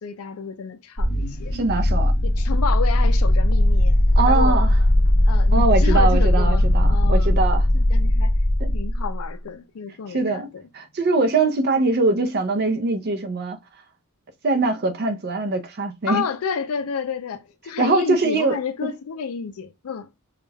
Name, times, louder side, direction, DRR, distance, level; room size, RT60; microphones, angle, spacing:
voice 1, 0.0-1.6 2.2-4.0 4.3-4.6 5.3-7.4 7.7-8.4 8.7-10.6 16.1-20.1, left 6 dB, 80° left, 0.4 m, -30 dB
sound 1, 1.0-9.2, left 1 dB, 45° left, 0.7 m, -18 dB
voice 2, 1.5-2.1 4.2-4.7 5.5-7.6 8.6-8.7 10.1-10.5 10.7-13.6 14.4-16.2 17.8-18.6, right 3 dB, 45° right, 0.5 m, -22 dB
2.3 x 2.2 x 3.2 m
head